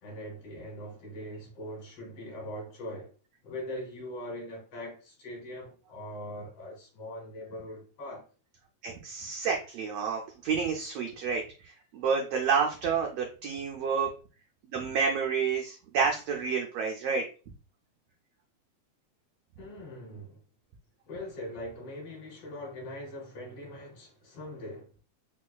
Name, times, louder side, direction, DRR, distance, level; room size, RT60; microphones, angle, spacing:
voice 1, 0.0-3.1 3.4-8.3 19.6-20.4 21.1-24.9, left 1 dB, 60° left, 1.9 m, -41 dB
voice 2, 8.8-11.4 11.9-14.1 14.7-17.2, right 5 dB, 85° right, 1.4 m, -29 dB
4.6 x 2.2 x 2.3 m
omnidirectional pair, 3.4 m